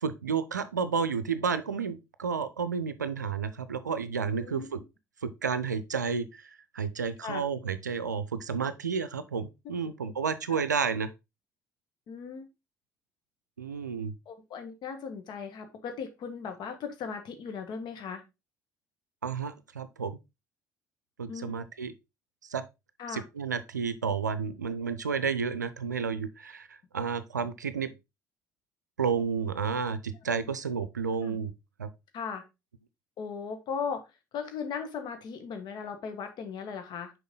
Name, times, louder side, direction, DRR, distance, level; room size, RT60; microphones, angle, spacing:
voice 1, 0.0-4.8 5.2-6.4 6.7-11.1 13.6-14.1 19.2-20.2 21.2-21.9 22.5-22.6 23.1-27.9 29.0-31.5 31.8-31.9, right 6 dB, 80° right, 0.5 m, -31 dB
voice 2, 12.1-12.4 14.3-18.2 21.3-21.6 23.0-23.2 31.2-31.4 32.1-32.4 33.2-34.0 34.3-37.1, left 6 dB, 50° left, 1.5 m, -37 dB
6.4 x 4.5 x 3.7 m
figure-of-eight pair, 50°, 9 cm